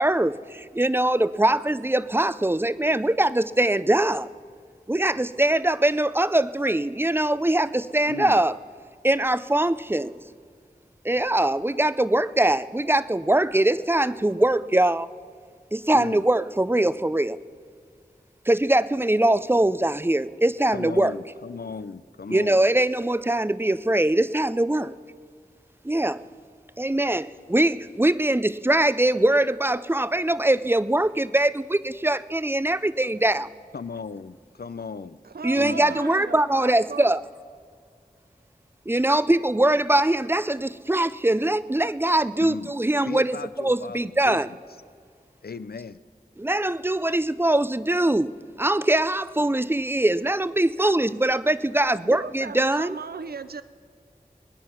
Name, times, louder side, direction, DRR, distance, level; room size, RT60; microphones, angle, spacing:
voice 1, 0.0-4.3 4.9-8.5 9.0-10.1 11.0-15.1 15.7-17.4 18.5-21.1 22.3-25.0 25.8-26.2 26.8-33.5 35.4-37.2 38.9-44.5 46.4-53.0, right 1 dB, 15° right, 16 dB, 0.4 m, -22 dB
voice 2, 8.1-8.4 15.9-16.3 20.7-22.6 33.7-35.2 35.6-36.0 42.4-42.7 43.0-44.5 45.4-46.0, left 5 dB, 85° left, 15 dB, 0.5 m, -36 dB
voice 3, 35.2-37.1 50.8-51.0 52.0-53.6, right 5 dB, 85° right, 13 dB, 0.5 m, -36 dB
22.0 x 9.6 x 5.7 m, 2.1 s
wide cardioid pair, 45°, 16 cm